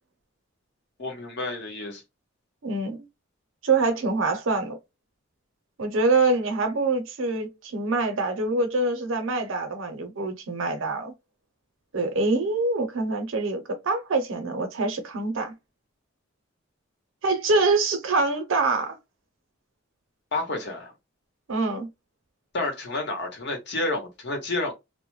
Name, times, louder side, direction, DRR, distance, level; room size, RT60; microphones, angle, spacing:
voice 1, 1.0-2.0 20.3-20.9 22.5-24.7, left 2 dB, 60° left, 0.9 m, -30 dB
voice 2, 2.6-3.0 3.6-4.8 5.8-11.1 11.9-15.5 17.2-19.0 21.5-21.9, right 3 dB, 70° right, 0.6 m, -25 dB
2.1 x 2.0 x 3.1 m
head